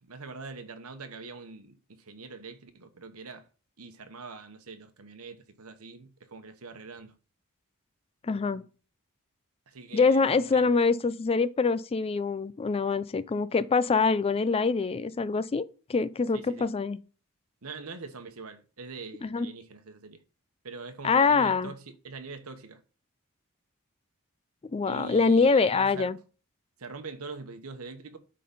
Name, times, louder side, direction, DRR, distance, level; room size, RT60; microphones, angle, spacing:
voice 1, 0.0-3.5 3.8-7.2 9.7-10.3 10.5-10.7 16.3-16.7 17.6-20.2 20.6-22.8 24.9-26.1 26.8-28.2, right 4 dB, 85° right, 1.1 m, -43 dB
voice 2, 8.2-8.6 9.9-15.6 15.9-17.0 19.2-19.5 21.0-21.7 24.6-26.2, left 4 dB, 25° left, 0.4 m, -24 dB
8.5 x 3.8 x 5.4 m
head